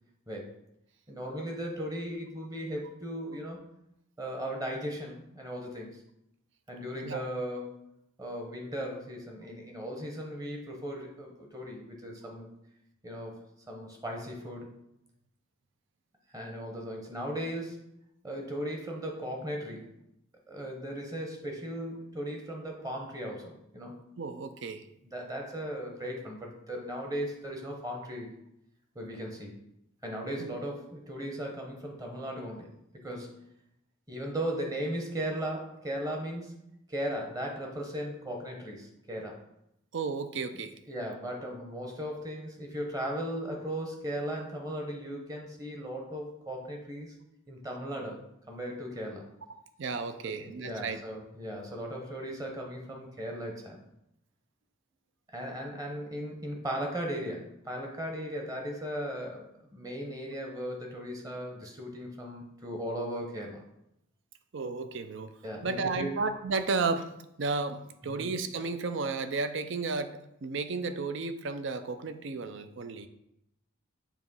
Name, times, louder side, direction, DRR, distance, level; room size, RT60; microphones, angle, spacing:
voice 1, 1.1-3.6 4.2-6.0 6.7-7.8 8.2-12.5 13.0-14.7 16.3-17.8 18.2-19.9 20.5-24.1 25.0-28.3 28.9-29.5 30.0-32.7 33.0-33.4 34.1-36.6 36.9-39.4 40.9-47.1 47.5-48.2 48.5-49.2 50.2-53.8 55.3-63.6 65.4-66.2 68.1-68.3, equal, 15° right, 1 dB, 0.9 m, -37 dB
voice 2, 24.2-24.8 30.4-30.5 39.9-40.7 49.8-51.0 64.5-65.3 65.6-67.1 67.4-73.1, right 4 dB, 60° right, 10 dB, 0.5 m, -33 dB
7.3 x 3.0 x 5.4 m, 0.82 s
head